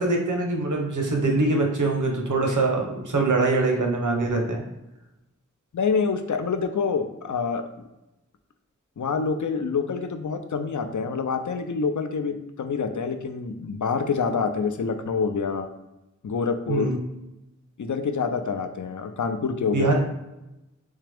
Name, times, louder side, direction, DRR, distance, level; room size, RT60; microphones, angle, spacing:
voice 1, 0.0-4.6 16.7-17.0 19.7-19.9, right 3 dB, 85° right, 1 dB, 0.8 m, -23 dB
voice 2, 5.7-7.6 9.0-15.7 16.2-17.0 17.8-19.9, left 5 dB, 80° left, 8 dB, 0.5 m, -26 dB
3.6 x 3.3 x 3.4 m, 0.95 s
wide cardioid pair, 45°, 30 cm